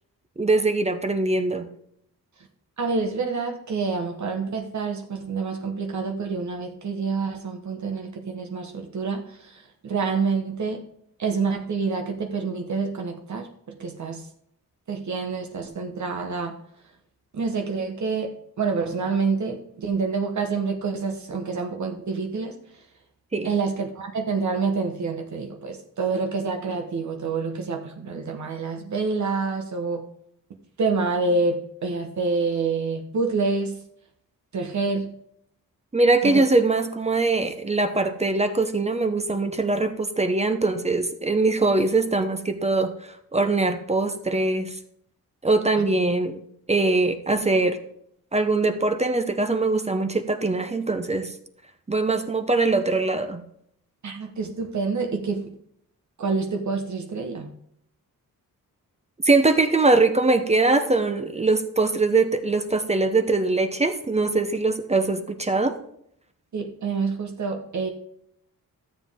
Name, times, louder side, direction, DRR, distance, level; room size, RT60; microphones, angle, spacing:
voice 1, 0.4-1.7 23.3-23.5 35.9-42.9 43.3-44.7 45.4-46.4 46.7-47.8 48.3-51.3 51.9-53.4 59.2-65.7, right 3 dB, 20° right, 7 dB, 0.7 m, -22 dB
voice 2, 2.8-10.8 11.2-14.2 14.9-16.6 17.3-22.6 23.4-30.1 30.8-33.8 34.5-35.1 36.2-36.4 45.8-45.9 54.0-55.5 56.2-57.5 66.5-67.9, right 4 dB, 50° right, 3 dB, 1.1 m, -27 dB
13.0 x 7.5 x 3.6 m, 0.71 s
wide cardioid pair, 120°, 36 cm